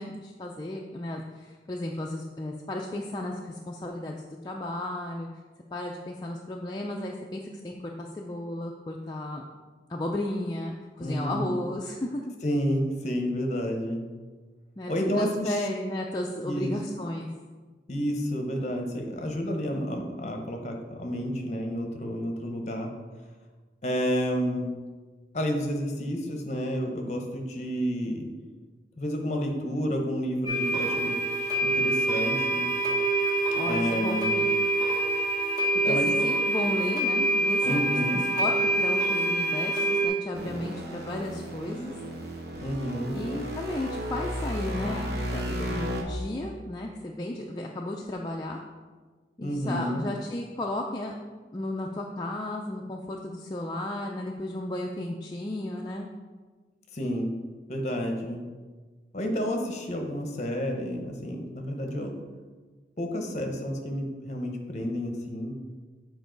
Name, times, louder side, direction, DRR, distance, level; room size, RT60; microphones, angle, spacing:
voice 1, 0.0-4.2 4.4-5.3 5.7-9.4 9.9-12.3 14.8-17.3 33.6-34.5 35.9-37.8 38.4-41.9 43.1-48.6 49.4-51.1 51.5-56.1, left 1 dB, 25° left, -1 dB, 0.4 m, -34 dB
voice 2, 11.0-11.5 12.4-14.0 14.9-15.7 16.4-16.7 17.9-22.9 23.8-24.7 25.3-28.3 29.0-31.2 31.7-32.7 33.6-34.3 35.8-36.1 37.6-38.2 42.6-43.2 49.4-50.0 56.9-57.3 57.7-58.4 59.1-62.1 63.0-65.5, equal, 40° left, 3 dB, 0.9 m, -30 dB
sound 1, 30.4-40.1, right 2 dB, 20° right, 1.2 m, -26 dB
sound 2, 40.3-46.0, equal, 65° right, 1.0 m, -34 dB
7.2 x 4.7 x 3.9 m, 1.4 s
head